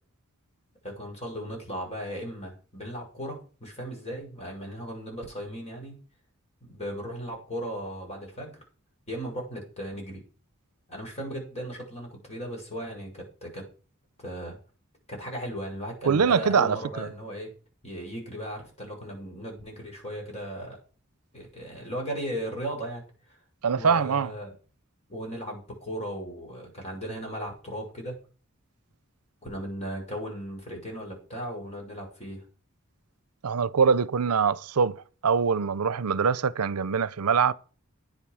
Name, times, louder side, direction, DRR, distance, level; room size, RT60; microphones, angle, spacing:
voice 1, 0.8-6.0 6.6-8.5 9.1-10.2 10.9-13.6 14.2-14.6 15.1-17.5 17.8-20.8 21.3-23.4 23.7-24.5 25.1-28.2 29.4-32.4, equal, 30° left, 6.5 m, -37 dB
voice 2, 16.1-17.1 23.6-24.3 33.4-37.5, right 6 dB, 90° right, 0.6 m, -23 dB
10.0 x 8.8 x 6.3 m
head